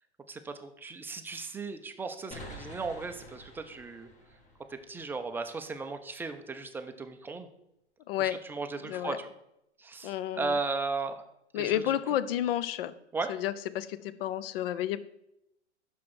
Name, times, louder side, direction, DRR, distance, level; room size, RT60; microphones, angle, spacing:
voice 1, 0.3-4.1 4.7-7.5 8.2-9.3 9.8-11.2 11.5-12.0 13.1-13.3, right 3 dB, 5° right, 7 dB, 0.4 m, -36 dB
sound 1, 2.3-5.8, left 1 dB, 20° left, 1.6 m, -49 dB
voice 2, 8.1-8.4 8.9-9.2 10.0-10.6 11.5-12.9 13.3-15.0, left 12 dB, 55° left, 15 dB, 0.6 m, -31 dB
6.0 x 5.9 x 6.2 m, 0.82 s
hypercardioid pair, 110°, 34 cm